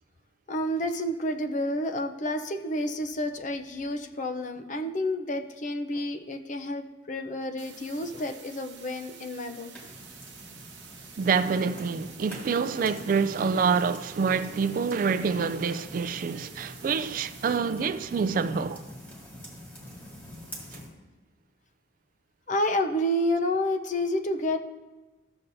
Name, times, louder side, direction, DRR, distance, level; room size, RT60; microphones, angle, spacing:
voice 1, 0.5-9.7 22.5-24.6, left 1 dB, 45° left, 0.5 m, -29 dB
sound 1, 7.6-17.6, right 8 dB, 70° right, 0.9 m, -49 dB
sound 2, 9.7-20.9, equal, 10° left, 1.9 m, -46 dB
voice 2, 11.2-18.8, right 5 dB, 45° right, 0.3 m, -26 dB
14.0 x 7.0 x 2.6 m
head